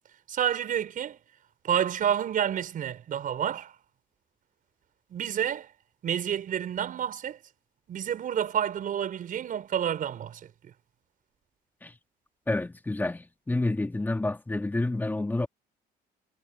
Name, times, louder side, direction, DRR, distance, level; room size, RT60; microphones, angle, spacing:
voice 1, 0.3-1.2 1.6-3.7 5.1-5.7 6.0-7.4 7.9-10.5, right 9 dB, 55° right, 5.5 m, -29 dB
voice 2, 12.5-15.5, left 2 dB, 10° left, 1.9 m, -29 dB
cardioid pair, 110°, 17 cm